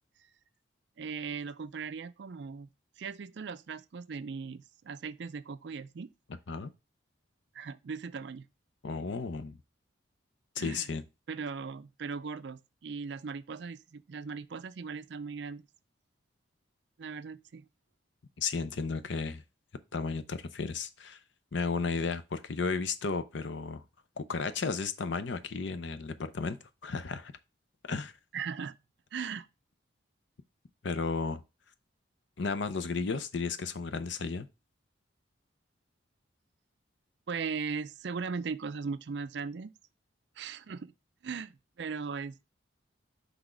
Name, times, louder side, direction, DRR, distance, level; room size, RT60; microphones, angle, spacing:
voice 1, 1.0-2.7 3.0-6.1 7.5-8.5 10.6-10.9 11.3-15.6 17.0-17.6 28.3-28.7 29.1-29.5 37.3-39.7 40.4-40.9 41.2-42.4, right 5 dB, 60° right, 0.4 m, -38 dB
voice 2, 8.8-9.6 10.6-11.0 18.4-19.4 19.9-21.2 21.5-23.8 24.2-26.6 26.8-27.3 27.9-28.1 30.8-31.4 32.4-34.5, left 4 dB, 70° left, 0.6 m, -33 dB
6.0 x 3.4 x 5.0 m
head